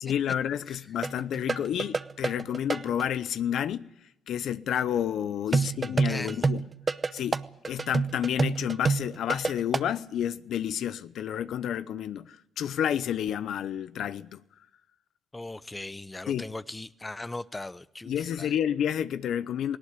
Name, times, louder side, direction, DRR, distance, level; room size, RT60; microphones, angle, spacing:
voice 1, 0.0-3.9 4.3-6.7 7.1-14.4 16.3-16.4 18.0-19.8, left 9 dB, 75° left, 0.7 m, -30 dB
sound 1, 1.0-3.1 5.5-9.9, right 4 dB, 30° right, 0.9 m, -27 dB
voice 2, 5.5-6.5 15.3-18.5, left 2 dB, 15° left, 0.8 m, -39 dB
18.5 x 17.5 x 9.7 m
cardioid pair, 90°, 0 cm